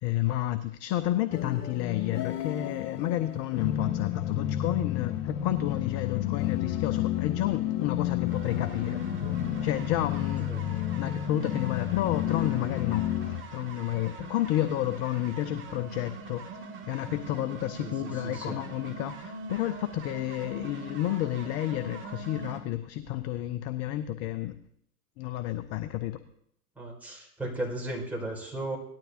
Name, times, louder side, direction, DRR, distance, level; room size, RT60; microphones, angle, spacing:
voice 1, 0.0-9.0 9.6-10.5 10.9-16.6 16.9-24.6 25.2-26.2, left 13 dB, 35° left, 12 dB, 0.6 m, -31 dB
sound 1, 1.3-13.4, left 12 dB, 75° left, 1.1 m, -31 dB
sound 2, 8.3-22.6, right 4 dB, 25° right, 2.1 m, -43 dB
voice 2, 17.8-18.5 26.7-28.8, right 1 dB, 5° right, -3 dB, 5.1 m, -36 dB
18.5 x 12.0 x 2.8 m, 0.71 s
hypercardioid pair, 100°, 47 cm